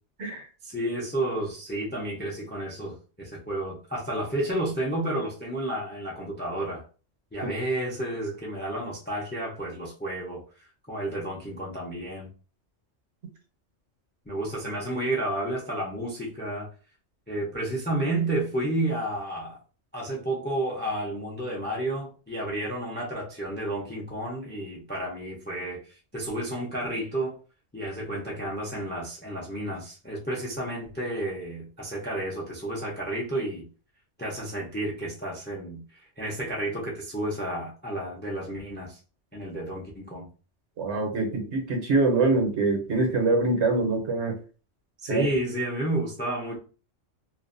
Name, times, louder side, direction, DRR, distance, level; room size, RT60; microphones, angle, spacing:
voice 1, 0.6-6.8 7.3-10.4 10.9-12.3 14.3-16.7 17.3-19.6 19.9-25.8 26.1-27.4 27.7-33.7 34.2-35.8 36.2-39.0 39.3-40.3 45.0-46.6, right 1 dB, 15° left, 0.3 m, -31 dB
voice 2, 40.8-44.4 45.1-45.3, right 3 dB, 70° right, 1.0 m, -24 dB
2.5 x 2.1 x 2.5 m
omnidirectional pair, 1.2 m